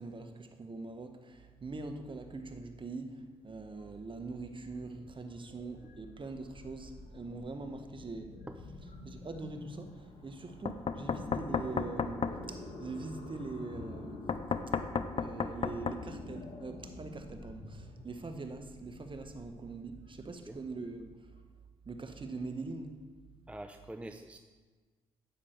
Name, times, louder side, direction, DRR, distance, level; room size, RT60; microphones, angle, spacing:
voice 1, 0.0-8.3 9.0-14.3 15.0-21.1 21.8-22.9, right 3 dB, 35° right, 7 dB, 1.3 m, -43 dB
sound 1, 3.6-21.4, left 2 dB, 55° left, 1.9 m, -48 dB
Knock, 10.6-12.4 14.3-16.0, left 6 dB, 40° left, 0.6 m, -33 dB
voice 2, 23.5-24.4, right 1 dB, 10° right, 7 dB, 0.7 m, -45 dB
9.8 x 8.0 x 4.6 m, 1.4 s
hypercardioid pair, 45°, 14 cm